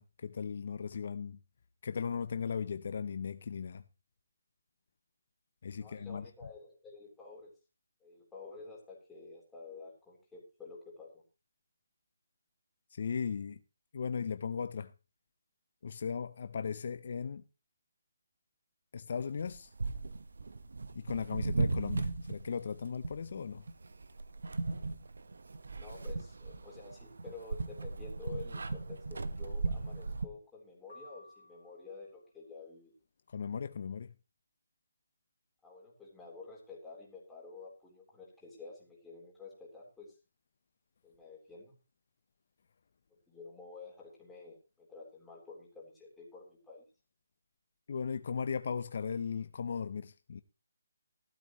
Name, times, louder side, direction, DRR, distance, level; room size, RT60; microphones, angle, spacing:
voice 1, 0.0-1.4 1.8-3.8 5.6-6.2 12.9-13.6 13.9-14.9 15.8-17.4 18.9-19.7 20.9-23.6 33.3-34.1 47.9-50.4, left 6 dB, 50° left, 0.6 m, -37 dB
voice 2, 5.8-7.5 8.0-11.2 25.8-32.9 35.6-40.1 41.0-41.7 43.3-46.8, left 4 dB, 5° left, 3.8 m, -50 dB
sound 1, 19.4-30.3, right 3 dB, 80° right, 1.2 m, -37 dB
sound 2, 30.9-32.2, left 2 dB, 75° left, 1.5 m, -56 dB
15.5 x 12.5 x 3.1 m
hypercardioid pair, 165°, 0 cm